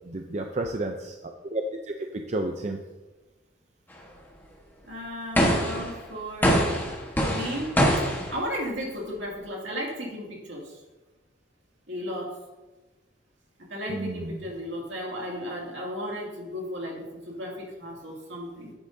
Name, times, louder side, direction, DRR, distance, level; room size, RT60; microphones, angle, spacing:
voice 1, 0.1-1.2 1.4-1.6 2.3-2.8 13.9-14.4, right 2 dB, 35° right, 4 dB, 0.5 m, -31 dB
voice 2, 4.9-6.7 7.3-7.7 8.3-10.7 11.9-12.3 13.7-18.7, equal, 70° right, -2 dB, 2.4 m, -34 dB
sound 1, 5.4-5.9 6.4-8.4, equal, 10° left, 1.3 m, -23 dB
9.8 x 9.8 x 2.7 m, 1.1 s
head